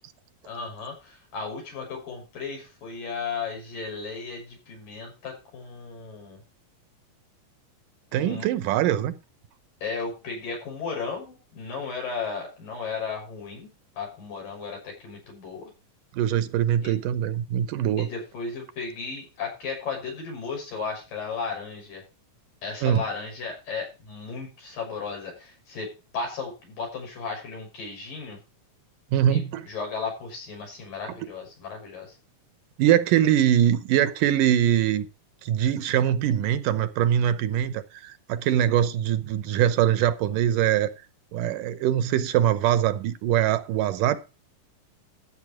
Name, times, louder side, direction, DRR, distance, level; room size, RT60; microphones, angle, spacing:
voice 1, 0.4-6.4 8.2-8.5 9.8-15.7 16.8-17.0 18.0-22.0 22.6-28.4 29.3-32.2, left 5 dB, 85° left, 8.0 m, -35 dB
voice 2, 8.1-9.1 16.1-18.1 22.8-23.0 29.1-29.7 32.8-35.1 35.5-40.9 41.3-44.2, right 10 dB, 80° right, 2.5 m, -23 dB
14.0 x 7.6 x 4.9 m
omnidirectional pair, 3.8 m